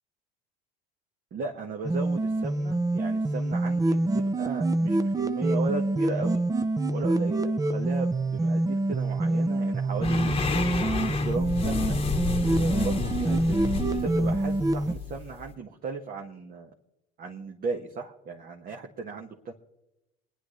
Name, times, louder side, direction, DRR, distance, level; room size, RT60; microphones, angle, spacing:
voice 1, 1.3-6.4 6.9-10.4 11.0-12.0 12.4-16.7 17.2-19.5, right 4 dB, 45° right, 0 dB, 1.7 m, -36 dB
sound 1, 1.8-14.9, right 2 dB, 15° right, 0.8 m, -26 dB
sound 2, 10.0-15.5, left 4 dB, 30° left, 1.2 m, -31 dB
29.5 x 10.5 x 3.3 m, 0.91 s
supercardioid pair, 85°, 20 cm